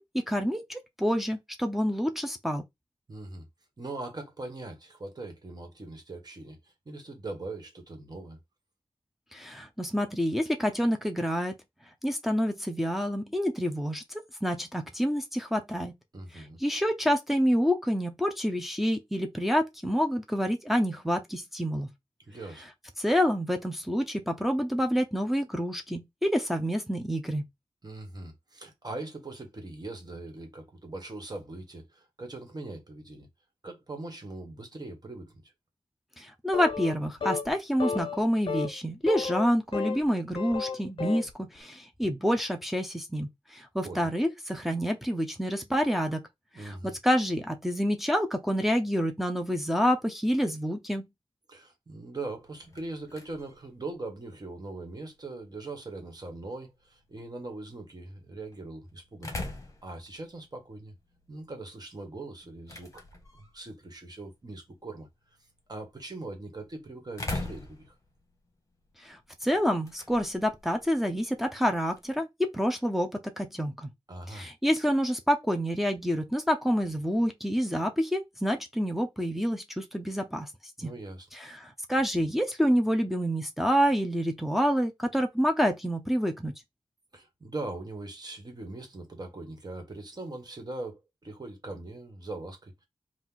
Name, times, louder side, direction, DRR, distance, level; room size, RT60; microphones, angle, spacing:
voice 1, 0.0-2.6 9.3-11.5 12.0-15.9 16.6-21.9 23.0-27.4 36.2-46.2 46.6-51.1 69.0-72.3 72.5-73.9 74.3-80.5 80.8-80.9 81.3-86.5, equal, 5° right, 0.7 m, -28 dB
voice 2, 3.1-3.5 3.8-8.4 16.1-16.6 22.3-22.7 27.8-33.3 33.6-35.3 43.8-44.1 46.5-46.9 51.5-59.4 59.8-60.9 61.3-63.0 63.3-65.1 65.7-67.9 74.1-74.5 80.8-81.3 87.1-92.9, right 2 dB, 40° right, 1.5 m, -41 dB
sound 1, 36.5-37.0 37.2-37.5 37.8-38.2 38.5-38.7 39.1-40.0 40.3-41.3, left 5 dB, 60° left, 0.6 m, -32 dB
sound 2, 52.3-72.2, left 2 dB, 35° left, 1.1 m, -45 dB
4.3 x 2.5 x 3.9 m
wide cardioid pair, 75°, 10 cm